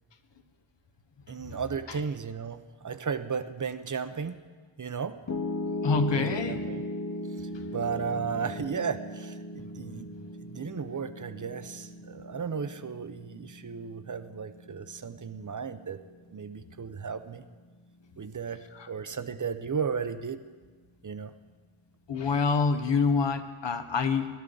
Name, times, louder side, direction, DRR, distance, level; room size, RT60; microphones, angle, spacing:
voice 1, 1.3-4.4 4.8-5.2 6.1-6.8 7.4-10.1 10.4-16.0 16.3-17.4 18.2-20.4 21.0-21.3, right 6 dB, 40° right, 11 dB, 0.7 m, -35 dB
Piano, 5.3-17.5, left 1 dB, 35° left, 0.7 m, -38 dB
voice 2, 5.8-6.6 18.7-18.9 22.1-24.4, left 4 dB, 60° left, 9 dB, 1.0 m, -26 dB
19.5 x 12.0 x 3.9 m, 1.5 s
wide cardioid pair, 80°, 49 cm